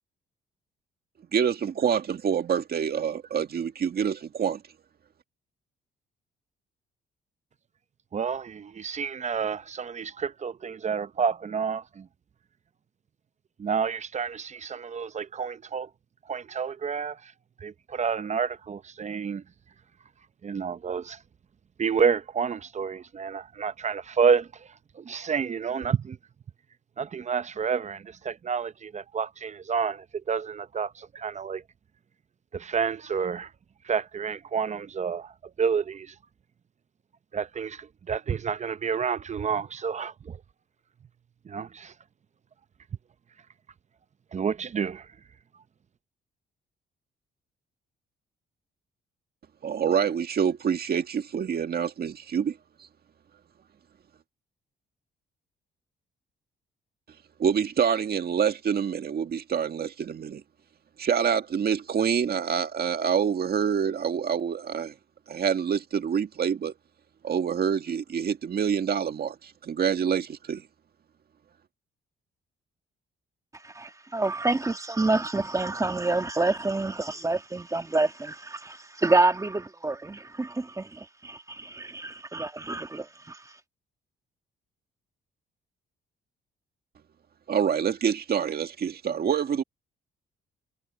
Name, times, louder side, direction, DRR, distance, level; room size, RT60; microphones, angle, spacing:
voice 1, 1.3-4.6 49.6-52.6 57.4-60.4 61.0-64.9 65.3-66.7 67.2-70.6 87.5-89.6, right 7 dB, 50° right, 1.9 m, -26 dB
voice 2, 8.1-12.1 13.6-15.9 16.3-17.3 17.6-19.4 20.4-21.2 21.8-26.2 27.0-31.6 32.5-33.5 33.8-35.3 35.6-36.2 37.3-40.4 41.4-41.9 44.3-45.1, right 6 dB, 35° right, 0.7 m, -29 dB
voice 3, 73.7-83.4, right 2 dB, 15° right, 1.5 m, -27 dB
cardioid pair, 90°, 20 cm